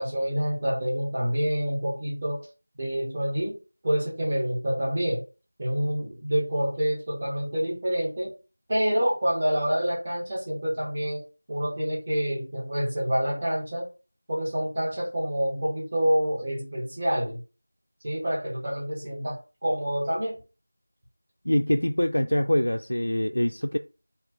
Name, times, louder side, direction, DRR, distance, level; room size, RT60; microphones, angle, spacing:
voice 1, 0.0-2.5 2.8-3.6 3.8-5.2 5.6-8.3 8.7-11.2 11.5-13.9 14.3-17.4 18.0-20.4, equal, 25° right, 1.8 m, -27 dB
voice 2, 21.5-23.8, left 1 dB, 75° left, 0.4 m, -24 dB
3.5 x 2.9 x 4.1 m
figure-of-eight pair, 175°, 0 cm